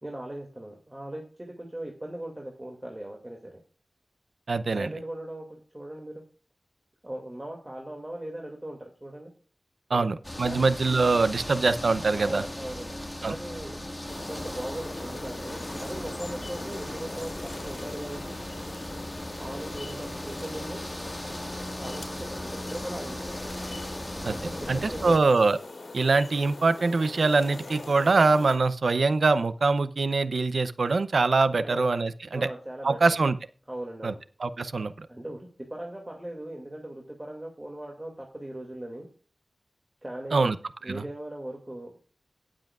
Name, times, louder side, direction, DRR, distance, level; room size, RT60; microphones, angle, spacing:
voice 1, 0.0-3.6 4.7-6.2 7.0-9.3 9.9-10.1 10.4-10.7 12.1-13.8 14.1-17.3 17.6-18.4 19.4-20.8 21.8-22.1 22.4-23.4 24.3-25.2 31.6-31.8 32.3-33.2 33.7-34.2 35.1-39.1 40.0-40.5 40.8-41.9, right 1 dB, 20° right, 0 dB, 2.3 m, -39 dB
voice 2, 4.5-4.9 9.9-12.4 13.2-13.3 24.2-24.3 24.7-25.6 25.9-32.5 32.8-33.4 34.0-34.1 34.4-35.1 40.3-40.6 40.9-41.0, right 3 dB, 75° right, 13 dB, 0.6 m, -23 dB
sound 1, 10.2-25.2, left 1 dB, 15° left, 1.8 m, -37 dB
sound 2, 14.1-28.6, left 3 dB, 70° left, 3.0 m, -43 dB
18.0 x 7.7 x 2.4 m, 0.41 s
wide cardioid pair, 80°, 0 cm